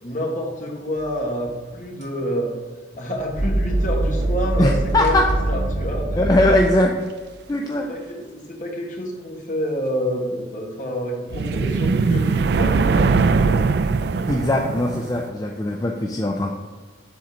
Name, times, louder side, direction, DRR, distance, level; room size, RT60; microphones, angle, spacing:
voice 1, 0.0-2.6 3.0-6.4 7.5-13.6, equal, 45° left, 0 dB, 1.4 m, -28 dB
sound 1, 2.0-2.1 3.2-6.9, right 1 dB, 85° right, 1.6 m, -23 dB
voice 2, 4.6-5.3 6.2-6.9 7.5-7.9 14.3-16.5, left 1 dB, 20° left, 1 dB, 0.4 m, -20 dB
sound 2, 11.3-15.3, right 4 dB, 60° right, 0.3 m, -20 dB
7.2 x 3.9 x 6.2 m, 1.5 s
head